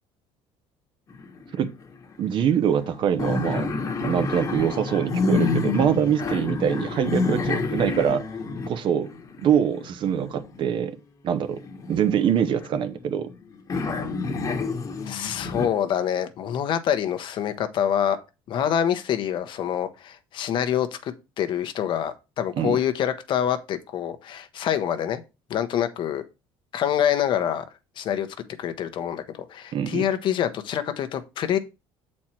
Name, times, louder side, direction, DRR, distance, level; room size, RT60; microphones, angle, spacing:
sound 1, 1.1-2.1 2.6-10.8 11.4-13.3 13.7-15.7, left 4 dB, 35° left, 1.2 m, -29 dB
voice 1, 2.2-3.7 4.0-8.3 8.7-9.1 9.4-11.0 11.2-11.6 11.9-13.3 22.6-22.8 29.7-30.1, right 8 dB, 55° right, 0.8 m, -24 dB
voice 2, 15.0-18.2 18.5-25.2 25.5-26.2 26.7-27.6 28.0-28.3 28.6-29.2 29.5-31.6, left 9 dB, 50° left, 0.8 m, -26 dB
7.4 x 4.3 x 4.4 m
cardioid pair, 120°, 10 cm